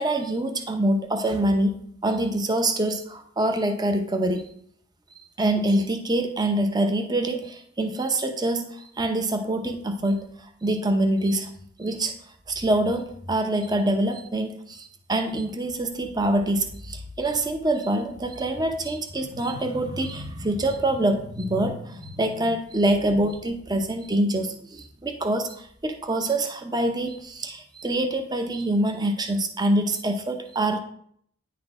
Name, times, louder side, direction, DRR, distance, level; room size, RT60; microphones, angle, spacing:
voice 1, 0.0-1.7 2.0-4.5 5.4-11.5 11.8-12.1 12.5-30.8, right 1 dB, 20° right, 6 dB, 0.7 m, -25 dB
9.7 x 4.3 x 4.8 m, 0.66 s
head